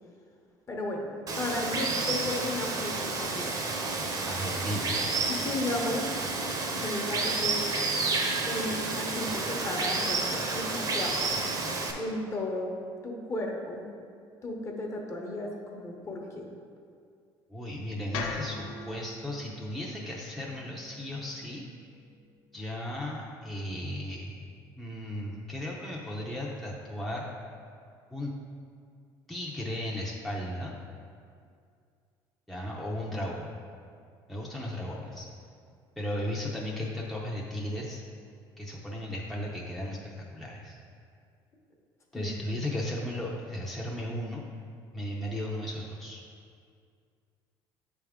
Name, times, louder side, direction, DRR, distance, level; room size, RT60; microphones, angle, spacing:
voice 1, 0.7-1.1 1.3-3.5 5.3-6.1 6.8-7.6 8.4-11.4 11.9-12.7 13.0-13.9 14.4-16.5 42.1-42.6, left 2 dB, 30° left, 0 dB, 1.0 m, -34 dB
Water, 1.3-11.9, right 3 dB, 40° right, 0.8 m, -30 dB
voice 2, 4.3-5.1 17.5-21.6 22.5-24.4 24.8-27.3 28.1-28.3 29.3-30.7 32.5-33.5 34.3-35.3 36.0-38.0 38.6-40.8 42.1-44.5 44.9-46.2, left 1 dB, ahead, -4 dB, 0.6 m, -35 dB
sound 1, 18.1-22.3, left 3 dB, 90° left, 0.7 m, -41 dB
8.3 x 3.5 x 3.6 m, 2.3 s
supercardioid pair, 100°, 9 cm